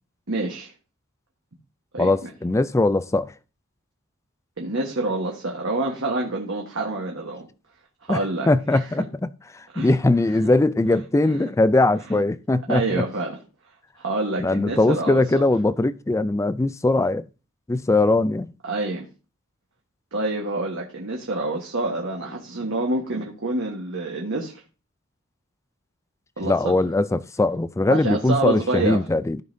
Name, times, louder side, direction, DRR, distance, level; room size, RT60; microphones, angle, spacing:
voice 1, 0.3-0.7 1.9-2.1 4.6-7.5 8.0-8.8 9.7-9.9 12.7-13.4 14.0-15.4 18.6-19.0 20.1-24.6 26.4-26.7 27.9-29.0, right 2 dB, 60° right, 1.4 m, -27 dB
voice 2, 2.0-3.3 8.1-8.2 8.5-13.0 14.4-17.3 17.7-18.5 26.4-29.4, left 2 dB, 15° left, 0.3 m, -21 dB
15.0 x 5.3 x 2.7 m
head